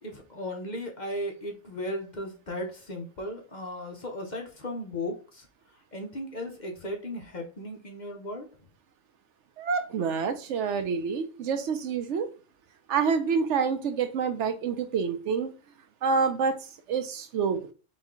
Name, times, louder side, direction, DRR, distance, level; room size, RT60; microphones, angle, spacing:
voice 1, 0.0-5.5 5.9-8.5, left 1 dB, 45° left, 2 dB, 0.7 m, -36 dB
voice 2, 9.6-12.3 12.9-15.5 16.0-16.6 16.9-17.6, right 5 dB, 75° right, 9 dB, 0.9 m, -27 dB
4.1 x 3.1 x 3.6 m, 0.35 s
omnidirectional pair, 1.3 m